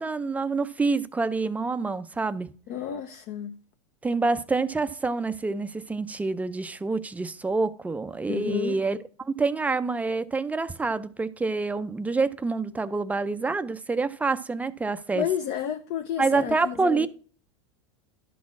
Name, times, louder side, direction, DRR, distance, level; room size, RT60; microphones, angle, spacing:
voice 1, 0.0-2.5 4.0-15.3 16.2-17.1, right 3 dB, 10° right, 0.5 m, -27 dB
voice 2, 2.7-3.5 8.3-8.8 15.1-17.1, left 9 dB, 45° left, 0.7 m, -31 dB
11.5 x 4.3 x 5.9 m
hypercardioid pair, 115°, 16 cm